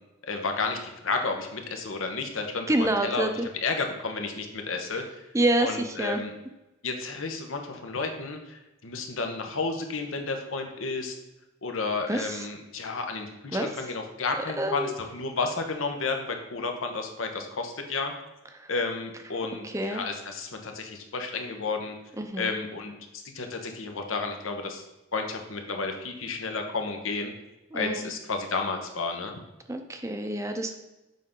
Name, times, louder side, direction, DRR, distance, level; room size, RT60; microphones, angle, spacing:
voice 1, 0.3-3.3 3.6-5.0 5.6-6.3 6.8-11.1 11.6-18.1 18.7-21.9 22.3-24.8 25.1-27.3 27.7-29.4, left 4 dB, 90° left, 4 dB, 1.1 m, -32 dB
voice 2, 2.7-3.3 5.3-6.2 12.1-12.4 13.5-13.7 14.4-14.9 18.6-18.7 19.6-20.0 22.2-22.5 27.7-28.1 29.7-30.7, right 1 dB, 15° right, 6 dB, 0.5 m, -27 dB
7.4 x 5.5 x 3.8 m, 1.0 s
head